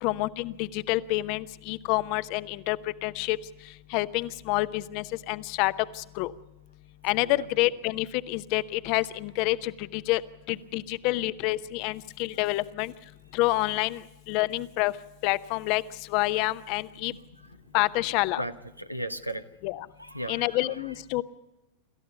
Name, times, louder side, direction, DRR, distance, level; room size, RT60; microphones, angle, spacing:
voice 1, 0.0-2.8 3.0-3.4 3.9-6.3 7.0-10.2 10.5-12.9 13.3-14.0 14.3-14.9 15.2-15.8 16.1-17.1 17.7-18.4 19.6-19.9 20.3-21.2, left 19 dB, 45° left, 15 dB, 0.8 m, -28 dB
voice 2, 17.1-17.6 18.4-19.5 20.0-20.6, right 1 dB, 90° right, 11 dB, 1.0 m, -36 dB
27.5 x 14.0 x 8.1 m, 0.96 s
figure-of-eight pair, 90°, 0 cm